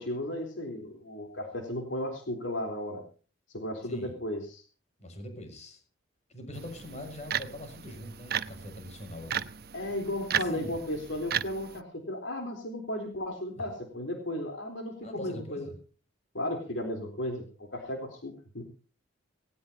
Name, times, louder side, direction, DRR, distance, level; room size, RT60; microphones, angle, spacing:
voice 1, 0.0-3.0 3.5-4.6 9.7-15.7 16.3-18.6, left 1 dB, 70° left, 3 dB, 3.8 m, -35 dB
voice 2, 3.8-4.1 5.0-5.8 6.3-9.5 10.3-10.8 15.0-15.8, left 1 dB, 35° left, 5 dB, 6.6 m, -43 dB
sound 1, 6.5-11.8, right 9 dB, 50° right, 0.8 m, -35 dB
19.0 x 19.0 x 2.9 m, 0.37 s
head